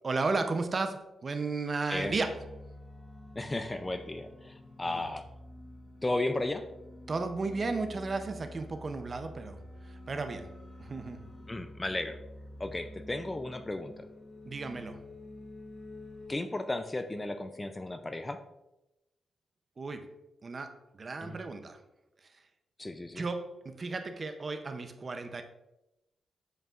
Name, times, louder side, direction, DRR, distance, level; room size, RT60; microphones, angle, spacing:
voice 1, 0.0-2.5 4.8-5.0 7.1-10.5 10.8-11.3 14.4-15.0 19.8-20.1 20.4-21.8 22.2-22.3 23.1-25.4, right 3 dB, 35° right, 7 dB, 0.5 m, -34 dB
sound 1, 1.9-16.3, left 1 dB, 35° left, 1.6 m, -49 dB
voice 2, 3.4-5.2 6.0-6.6 11.5-12.2 12.6-14.0 16.3-18.4 21.2-21.4 22.8-23.2, left 2 dB, 15° left, 8 dB, 0.3 m, -34 dB
7.6 x 5.2 x 2.4 m, 0.92 s
wide cardioid pair, 145°, 0 cm